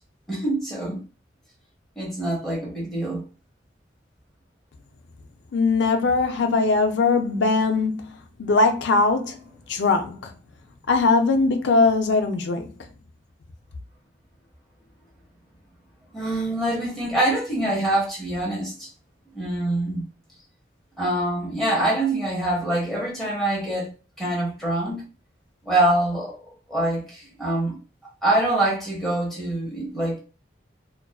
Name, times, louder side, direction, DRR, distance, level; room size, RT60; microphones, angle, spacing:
voice 1, 0.3-1.0 2.0-3.2 16.1-18.9 19.3-20.0 21.0-23.9 24.2-25.1 25.6-26.4 26.7-27.8 28.2-30.2, right 1 dB, ahead, 0.9 m, -25 dB
voice 2, 5.5-8.1 8.4-9.4 9.7-10.3 10.9-12.7, left 3 dB, 75° left, 0.4 m, -20 dB
2.4 x 2.2 x 2.3 m
head